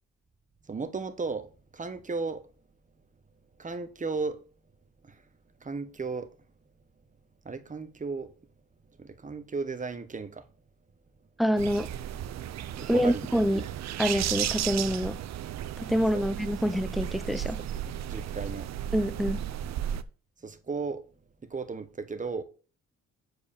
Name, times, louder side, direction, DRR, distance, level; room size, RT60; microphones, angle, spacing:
voice 1, 0.7-2.4 3.6-4.4 5.0-5.2 5.6-6.3 7.4-8.3 9.0-10.4 12.7-13.2 13.5-13.6 16.1-16.2 18.1-18.7 20.4-21.0 21.4-22.4, right 4 dB, 25° right, 1.1 m, -35 dB
voice 2, 11.4-11.9 12.9-13.6 14.0-15.2 15.8-17.6 18.9-19.4, equal, ahead, 0.6 m, -26 dB
sound 1, 11.6-20.0, right 11 dB, 65° right, 0.6 m, -34 dB
7.2 x 4.9 x 6.7 m
cardioid pair, 90°, 30 cm